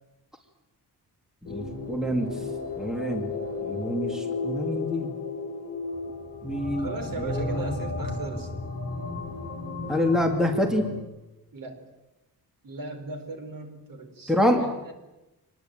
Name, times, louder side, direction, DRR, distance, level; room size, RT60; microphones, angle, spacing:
sound 1, 1.4-11.0, left 3 dB, 40° left, 7.8 m, -34 dB
voice 1, 1.4-2.4 2.8-3.3 3.6-5.1 6.4-6.9 7.2-7.7 9.9-10.9 14.3-14.7, left 1 dB, ahead, 4 dB, 2.2 m, -26 dB
voice 2, 6.8-8.5 11.5-11.8 12.6-14.9, right 3 dB, 55° right, 6 dB, 4.4 m, -37 dB
26.0 x 20.5 x 9.1 m, 0.98 s
wide cardioid pair, 180°, 39 cm